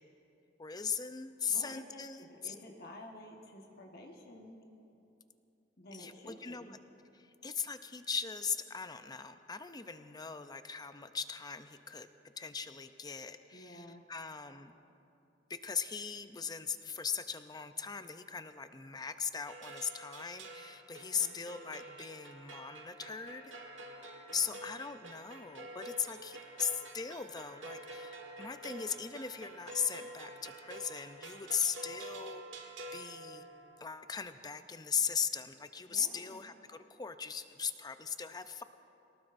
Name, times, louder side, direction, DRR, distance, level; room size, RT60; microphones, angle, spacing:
voice 1, 0.6-2.5 5.9-6.7 7.2-12.1 12.4-14.8 15.5-23.4 23.8-33.5 33.8-38.6, left 6 dB, 20° left, 10 dB, 0.5 m, -39 dB
voice 2, 1.5-4.6 5.8-6.7 13.5-14.0 21.1-21.4 24.3-24.5 35.9-36.4, left 1 dB, 55° left, 1 dB, 1.4 m, -51 dB
sound 1, 19.5-33.9, right 2 dB, 80° right, 1.6 m, -48 dB
22.5 x 18.5 x 2.6 m, 2.8 s
head